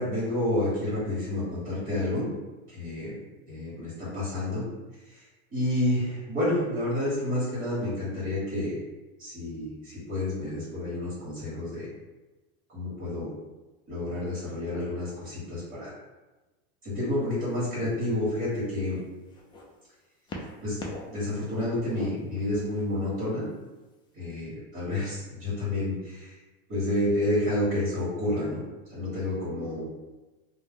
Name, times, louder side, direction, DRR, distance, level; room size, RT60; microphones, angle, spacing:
voice 1, 0.0-2.3 2.7-3.2 3.5-4.6 5.1-5.2 5.5-8.8 9.2-11.9 12.7-13.3 13.9-15.9 16.8-19.0 20.6-20.8 21.1-23.5 24.1-26.3 26.7-28.6 28.9-29.9, left 1 dB, 40° right, -9 dB, 1.4 m, -29 dB
sound 1, 17.2-17.5 18.3-19.6 20.3-21.2 21.5-22.9 23.8-23.9, left 2 dB, 15° left, 0.3 m, -42 dB
2.6 x 2.2 x 3.5 m, 1.1 s
supercardioid pair, 135°, 31 cm